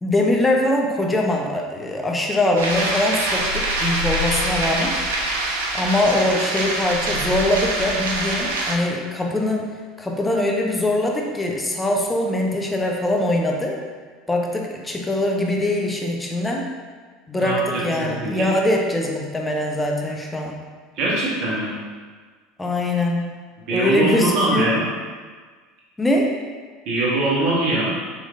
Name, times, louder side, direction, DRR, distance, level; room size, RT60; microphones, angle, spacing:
voice 1, 0.0-5.0 5.7-13.8 14.3-16.7 17.3-20.6 22.6-23.3 23.7-24.7 26.0-26.3, left 1 dB, 15° left, 0 dB, 0.6 m, -22 dB
sound 1, 2.6-8.8, right 1 dB, 80° right, 0.4 m, -24 dB
voice 2, 17.4-18.5 21.0-21.7 23.7-24.9 26.8-27.9, right 2 dB, 55° right, -6 dB, 1.2 m, -22 dB
4.0 x 3.1 x 2.5 m, 1.5 s
hypercardioid pair, 75°, 0 cm